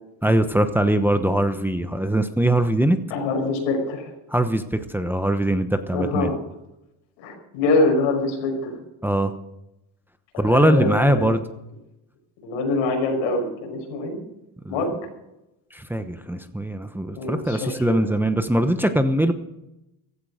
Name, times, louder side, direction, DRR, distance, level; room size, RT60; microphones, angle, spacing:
voice 1, 0.2-3.0 4.3-6.3 9.0-9.3 10.4-11.4 14.6-14.8 15.7-19.3, right 1 dB, 5° right, 8 dB, 0.9 m, -21 dB
voice 2, 3.1-4.1 5.9-6.4 7.2-8.8 10.3-11.3 12.4-14.2 14.7-14.9 17.2-18.0, left 3 dB, 90° left, 2 dB, 6.0 m, -24 dB
15.5 x 13.0 x 5.0 m, 0.89 s
cardioid pair, 120°, 47 cm